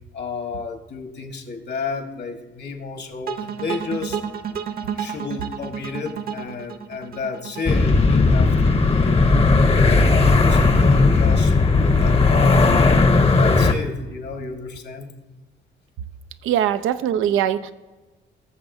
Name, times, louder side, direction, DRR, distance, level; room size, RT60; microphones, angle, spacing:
voice 1, 0.1-4.2 4.9-15.1, left 5 dB, 60° left, 5 dB, 1.5 m, -32 dB
sound 1, 3.3-8.4, right 7 dB, 50° right, 0.9 m, -31 dB
sound 2, 7.7-13.7, left 3 dB, 30° left, 0.9 m, -16 dB
voice 2, 16.4-17.7, right 10 dB, 90° right, 11 dB, 0.5 m, -21 dB
18.5 x 6.9 x 2.7 m, 1.2 s
cardioid pair, 90°, 20 cm